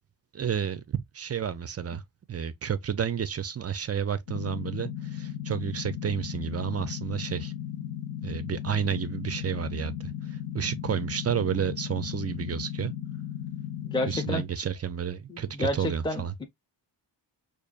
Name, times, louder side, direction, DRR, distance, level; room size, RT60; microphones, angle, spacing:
voice 1, 0.3-2.0 2.3-7.5 8.2-12.9 14.1-16.3, right 8 dB, 35° right, 0.4 m, -31 dB
sound 1, 4.3-14.4, left 10 dB, 70° left, 1.0 m, -36 dB
voice 2, 13.8-14.4 15.3-16.5, left 1 dB, 10° left, 0.6 m, -30 dB
5.1 x 2.5 x 2.3 m
wide cardioid pair, 110°, 46 cm